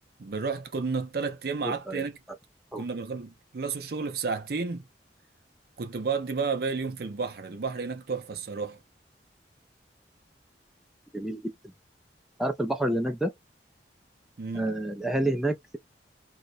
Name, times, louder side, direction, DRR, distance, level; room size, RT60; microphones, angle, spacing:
voice 1, 0.2-2.2 2.8-4.8 5.8-8.8 14.4-14.7, right 4 dB, 60° right, 0.5 m, -31 dB
voice 2, 1.6-2.0 2.7-2.8 11.1-11.5 12.4-13.3 14.5-15.8, right 1 dB, ahead, 0.4 m, -28 dB
2.4 x 2.1 x 2.5 m
head